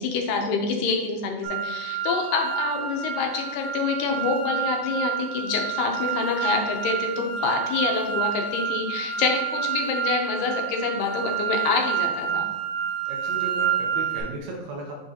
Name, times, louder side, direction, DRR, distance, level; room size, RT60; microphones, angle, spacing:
voice 1, 0.0-12.5, left 4 dB, 90° left, 2 dB, 2.6 m, -26 dB
sound 1, 1.4-14.2, right 8 dB, 85° right, 2.9 m, -29 dB
voice 2, 13.1-15.0, right 2 dB, 70° right, 0 dB, 1.9 m, -35 dB
9.6 x 3.9 x 2.9 m, 1.1 s
omnidirectional pair, 3.7 m